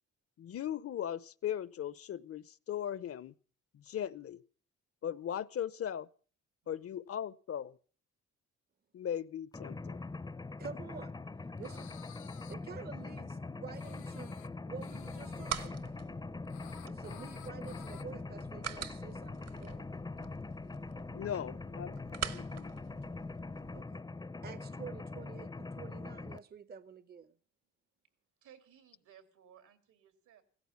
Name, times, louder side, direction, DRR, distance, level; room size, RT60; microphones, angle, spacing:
voice 1, 0.4-3.3 3.7-4.4 5.0-6.1 6.7-7.8 8.9-10.0 21.1-22.7, left 9 dB, 50° left, 0.8 m, -38 dB
Mechanisms, 9.5-26.4, left 3 dB, 15° left, 0.6 m, -43 dB
voice 2, 10.6-11.1 11.6-12.0 12.5-14.4 14.7-16.0 16.8-19.9 23.7-24.0 24.4-27.3, right 6 dB, 35° right, 0.8 m, -49 dB
sound 1, 11.6-12.5 13.7-14.5 14.8-15.7 16.5-18.0, left 11 dB, 80° left, 1.0 m, -55 dB
sound 2, 14.9-23.8, right 8 dB, 55° right, 1.3 m, -46 dB
voice 3, 28.4-30.4, right 9 dB, 80° right, 2.8 m, -60 dB
16.0 x 14.0 x 5.9 m
cardioid pair, 90°, 30 cm